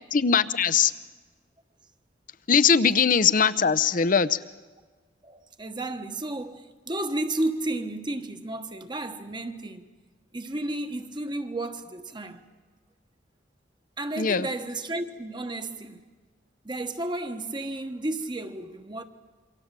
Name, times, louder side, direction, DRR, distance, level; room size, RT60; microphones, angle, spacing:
voice 1, 0.1-0.9 2.5-4.4 14.2-14.5, left 6 dB, 45° left, 0.7 m, -21 dB
voice 2, 5.2-9.9 10.3-12.4 14.0-16.1 16.6-19.0, right 2 dB, 25° right, 1.2 m, -32 dB
27.5 x 24.0 x 7.5 m
head